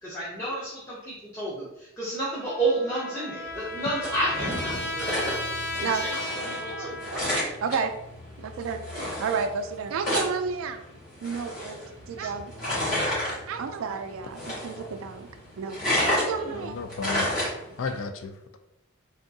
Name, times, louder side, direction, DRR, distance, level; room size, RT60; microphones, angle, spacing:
voice 1, 0.0-5.2 5.8-6.1 6.5-6.9 12.2-12.3 16.0-16.5, right 2 dB, 15° left, 0.6 m, -31 dB
Trumpet, 2.3-7.5, left 1 dB, 55° left, 0.9 m, -34 dB
sound 1, 3.5-18.0, left 1 dB, 40° left, 1.4 m, -32 dB
voice 2, 6.7-7.9 8.4-10.8 11.2-11.8 12.1-12.5 13.5-15.3 15.6-16.8, right 5 dB, 85° right, 0.3 m, -31 dB
voice 3, 16.5-17.3 17.8-18.6, left 4 dB, 75° left, 0.4 m, -33 dB
3.5 x 2.2 x 2.7 m
head